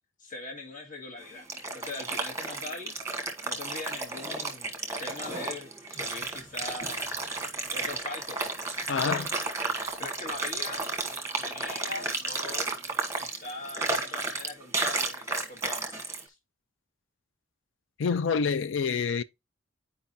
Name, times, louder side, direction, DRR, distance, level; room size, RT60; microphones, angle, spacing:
voice 1, 0.2-2.9 3.4-4.7 5.0-7.1 7.7-8.5 8.9-9.2 10.0-11.0 11.4-12.7 13.2-16.3, left 3 dB, 40° left, 1.7 m, -41 dB
sound 1, 1.2-16.2, right 3 dB, 15° right, 1.2 m, -33 dB
voice 2, 8.9-9.3 18.0-19.2, left 5 dB, 65° left, 0.5 m, -27 dB
9.1 x 4.9 x 2.7 m
head